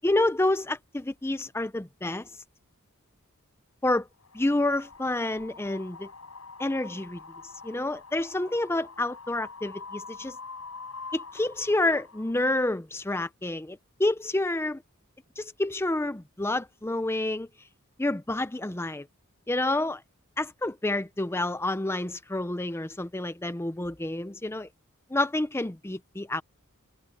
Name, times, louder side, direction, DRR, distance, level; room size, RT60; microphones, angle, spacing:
voice 1, 0.0-2.3 3.8-4.1 4.3-6.1 6.6-7.2 7.6-10.4 11.1-14.8 15.4-17.5 18.0-19.1 19.5-20.0 20.4-24.7 25.1-26.4, left 2 dB, 10° left, 0.5 m, -28 dB
Wind, 4.2-12.3, left 4 dB, 75° left, 7.6 m, -45 dB
head